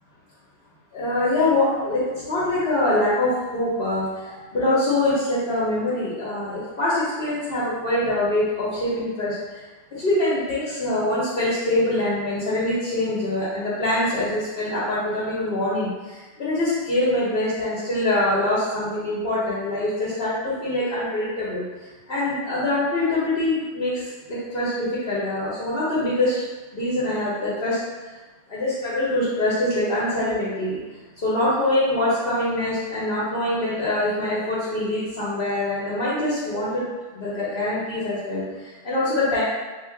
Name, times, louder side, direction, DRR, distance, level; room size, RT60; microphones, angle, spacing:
voice 1, 0.9-9.6 9.9-21.6 22.1-23.9 24.3-26.4 26.7-27.8 28.5-30.8 31.2-36.8 37.1-39.4, left 1 dB, 55° left, -10 dB, 1.0 m, -24 dB
2.8 x 2.4 x 3.7 m, 1.3 s
omnidirectional pair, 1.2 m